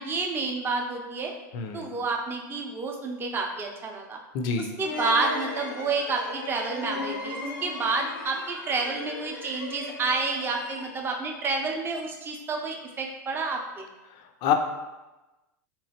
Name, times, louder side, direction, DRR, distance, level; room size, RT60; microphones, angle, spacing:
voice 1, 0.0-1.3 1.7-4.2 4.6-13.8, right 3 dB, 20° right, 2 dB, 0.6 m, -29 dB
voice 2, 1.5-1.9 4.3-4.7 14.4-14.5, left 7 dB, 45° left, 5 dB, 0.5 m, -26 dB
sound 1, 4.8-11.3, left 2 dB, 90° left, 0.7 m, -36 dB
3.7 x 3.0 x 2.8 m, 1.1 s
hypercardioid pair, 110°, 10 cm